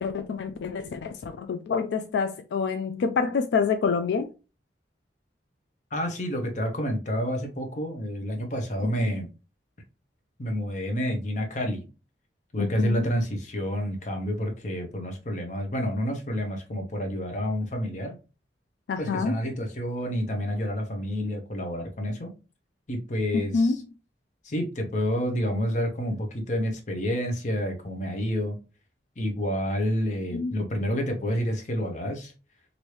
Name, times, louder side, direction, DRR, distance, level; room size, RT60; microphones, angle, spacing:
voice 1, 0.0-4.3 12.6-13.0 18.9-19.4 23.3-23.8 30.3-30.5, left 5 dB, 80° left, 0.3 m, -27 dB
voice 2, 5.9-9.3 10.4-11.8 12.5-18.1 19.0-22.3 22.9-23.8 24.4-28.6 29.2-32.3, equal, 45° left, 0.7 m, -29 dB
3.1 x 2.6 x 3.0 m
head